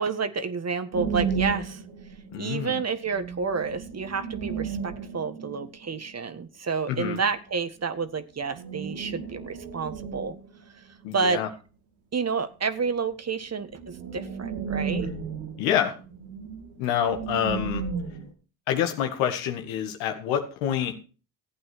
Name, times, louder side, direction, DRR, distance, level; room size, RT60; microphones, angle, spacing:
voice 1, 0.0-1.8 2.4-10.3 11.1-11.4 12.1-15.1, right 5 dB, 35° right, 10 dB, 1.6 m, -29 dB
sound 1, 0.9-2.5 2.8-2.9 3.0-6.2 8.5-10.6 13.1-13.2 13.5-18.3, right 5 dB, 85° right, 3.0 m, -34 dB
voice 2, 2.3-2.8 6.9-7.2 11.0-11.5 15.6-16.0 16.8-17.8 18.7-21.0, left 9 dB, 80° left, 6 dB, 1.9 m, -27 dB
15.0 x 8.7 x 4.6 m, 0.36 s
hypercardioid pair, 60°, 46 cm